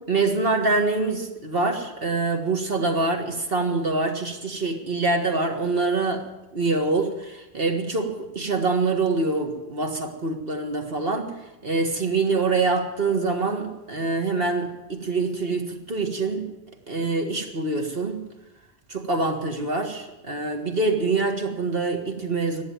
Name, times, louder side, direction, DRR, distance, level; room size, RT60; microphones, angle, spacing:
voice 1, 0.1-6.2 6.5-11.3 11.6-16.4 16.9-18.2 18.9-22.6, right 3 dB, 60° right, 5 dB, 1.9 m, -25 dB
15.5 x 10.0 x 9.1 m, 1.0 s
omnidirectional pair, 1.1 m